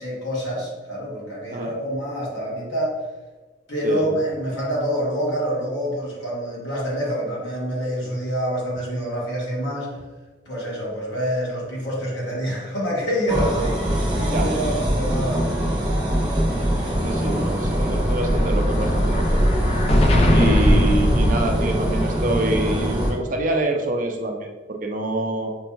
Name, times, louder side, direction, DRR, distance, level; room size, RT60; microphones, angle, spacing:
voice 1, 0.0-3.0 3.7-10.0 10.5-15.9 17.3-17.4 19.2-19.4, equal, 80° left, -5 dB, 1.3 m, -27 dB
voice 2, 3.8-4.2 14.3-14.8 17.0-19.3 20.3-25.5, right 2 dB, 45° right, 3 dB, 0.4 m, -26 dB
sound 1, 13.3-23.1, equal, 25° right, 0.9 m, -23 dB
Explosion, 17.4-22.1, equal, 35° left, 0.3 m, -20 dB
5.2 x 2.8 x 2.2 m, 1.3 s
head